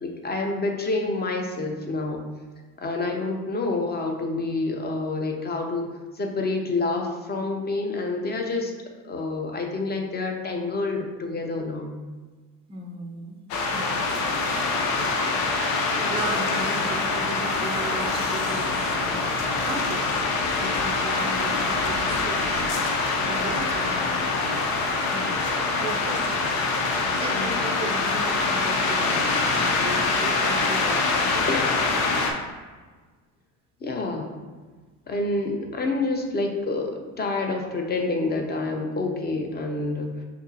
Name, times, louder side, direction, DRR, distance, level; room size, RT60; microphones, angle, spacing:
voice 1, 0.0-2.3 2.8-5.9 6.1-8.7 9.0-12.0 27.3-27.7 31.5-31.8 33.8-34.3 35.1-40.2, left 3 dB, 25° left, 2 dB, 0.7 m, -28 dB
voice 2, 12.7-13.4 13.7-14.1 15.9-22.7 23.2-24.2 25.1-26.6 27.1-31.2, right 2 dB, 15° right, 3 dB, 0.5 m, -36 dB
sound 1, 13.5-32.3, left 3 dB, 80° left, 0.7 m, -24 dB
5.8 x 2.0 x 2.7 m, 1.4 s
hypercardioid pair, 80°, 42 cm